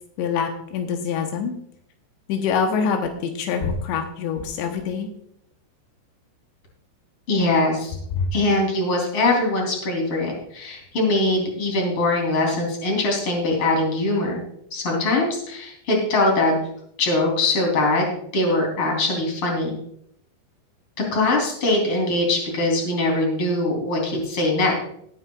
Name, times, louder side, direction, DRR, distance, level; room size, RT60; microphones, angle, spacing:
voice 1, 0.2-1.5 2.3-5.1 8.2-8.3, left 6 dB, 85° left, 4 dB, 3.3 m, -25 dB
voice 2, 7.3-7.9 8.3-14.4 14.7-16.6 17.0-19.7 21.1-24.8, left 2 dB, 30° left, -1 dB, 3.9 m, -22 dB
19.5 x 9.5 x 2.4 m, 0.70 s
omnidirectional pair, 5.0 m